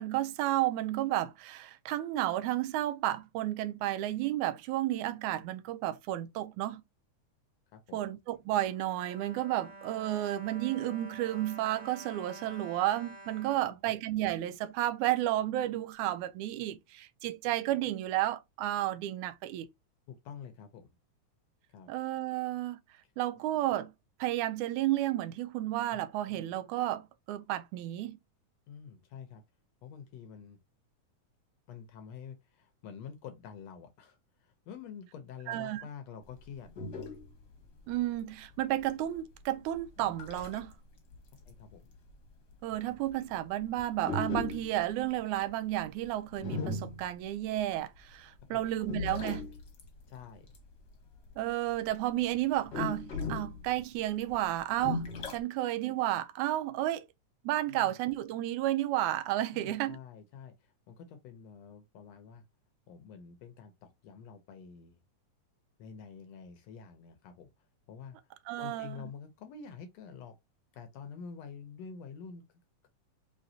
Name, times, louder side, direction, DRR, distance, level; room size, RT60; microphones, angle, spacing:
voice 1, 0.0-6.8 7.9-19.7 21.9-22.8 23.2-23.9 24.2-28.2 35.5-35.9 37.9-40.7 42.6-49.5 51.4-57.1 57.5-60.0 68.5-69.0, right 14 dB, 80° right, 1.9 m, -32 dB
voice 2, 7.7-8.1 13.6-13.9 20.1-20.9 21.7-21.9 23.0-23.1 25.9-26.0 28.7-29.4 29.8-30.6 31.7-36.7 41.5-41.9 48.5-48.6 50.1-50.5 57.7-57.9 59.5-62.4 62.9-65.0 65.8-67.5 67.9-68.2 68.6-70.3 70.7-72.4, left 6 dB, 75° left, 1.6 m, -48 dB
Bowed string instrument, 8.3-14.6 15.3-15.4 15.7-15.8, right 2 dB, 45° right, 1.7 m, -50 dB
sound 1, 36.2-40.7 41.1-48.0 48.4-51.9 52.1-55.4, left 3 dB, 50° left, 1.3 m, -38 dB
5.2 x 3.2 x 2.7 m
omnidirectional pair, 3.5 m